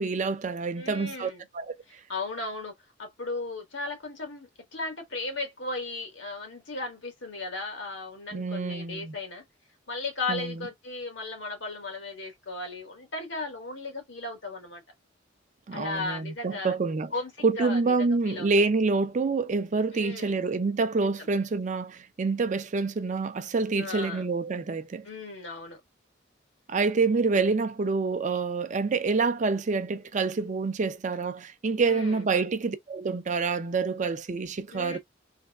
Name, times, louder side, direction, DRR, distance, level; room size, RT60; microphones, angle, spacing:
voice 1, 0.0-1.7 8.3-9.1 10.3-10.6 15.7-17.1 17.4-25.1 26.7-35.0, right 4 dB, 40° right, 0.5 m, -27 dB
voice 2, 0.7-1.5 1.9-9.4 9.9-14.8 15.7-16.7 17.1-18.5 19.9-20.4 21.0-21.3 23.8-24.3 25.0-25.8 31.8-32.2 34.7-35.0, left 3 dB, 80° left, 1.6 m, -36 dB
3.3 x 2.6 x 2.3 m
head